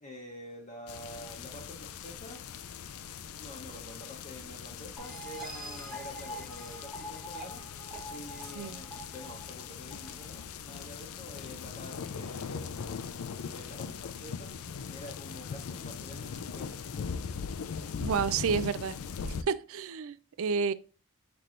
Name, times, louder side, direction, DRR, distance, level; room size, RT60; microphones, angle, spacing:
voice 1, 0.0-2.4 3.4-7.6 8.0-12.9 13.5-14.5 14.9-16.7, equal, 30° left, 0.8 m, -47 dB
sound 1, 0.9-19.4, left 6 dB, 75° left, 0.4 m, -40 dB
sound 2, 5.0-10.4, right 1 dB, ahead, 1.0 m, -45 dB
voice 2, 18.0-19.0 19.5-20.7, right 6 dB, 65° right, 0.3 m, -30 dB
5.8 x 3.3 x 2.5 m
head